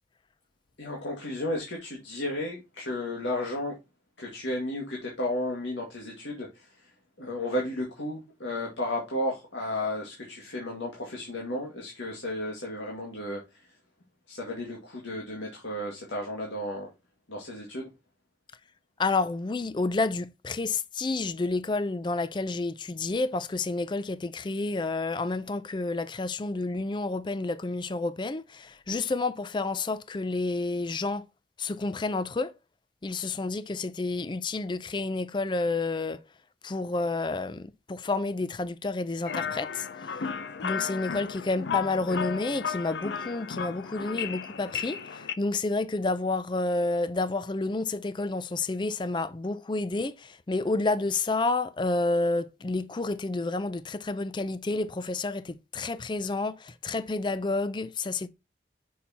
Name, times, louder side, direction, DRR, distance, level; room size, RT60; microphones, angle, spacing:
voice 1, 0.8-3.8 4.2-6.9 7.2-13.6 14.3-16.9 17.3-17.9, left 1 dB, 90° left, 2.0 m, -33 dB
voice 2, 19.0-31.3 31.6-32.5 33.0-36.2 36.6-40.3 40.6-58.3, left 3 dB, 25° left, 0.4 m, -30 dB
sound 1, 39.2-45.3, left 7 dB, 75° left, 0.6 m, -34 dB
6.3 x 5.5 x 2.8 m
head